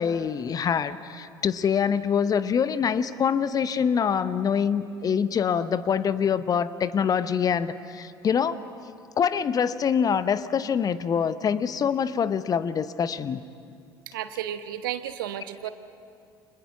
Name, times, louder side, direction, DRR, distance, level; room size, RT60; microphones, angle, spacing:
voice 1, 0.0-8.6 9.2-13.4, left 7 dB, 30° left, 15 dB, 0.8 m, -25 dB
voice 2, 14.1-15.7, right 11 dB, 65° right, 11 dB, 1.0 m, -33 dB
29.5 x 25.5 x 5.9 m, 2.4 s
figure-of-eight pair, 60°, 12 cm